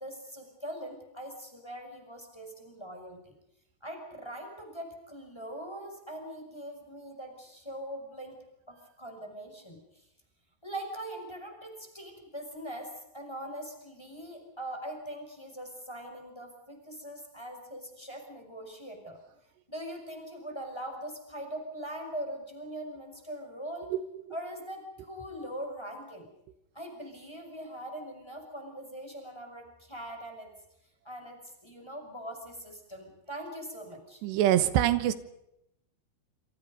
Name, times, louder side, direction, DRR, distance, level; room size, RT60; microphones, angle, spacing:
voice 1, 0.0-3.3 3.8-8.3 8.7-10.0 10.6-19.2 19.7-24.0 24.3-26.3 26.7-30.5 31.0-34.2, right 1 dB, 5° left, 4 dB, 5.5 m, -42 dB
voice 2, 34.2-35.1, right 12 dB, 85° right, 12 dB, 3.4 m, -24 dB
28.0 x 26.0 x 5.4 m, 0.83 s
omnidirectional pair, 4.8 m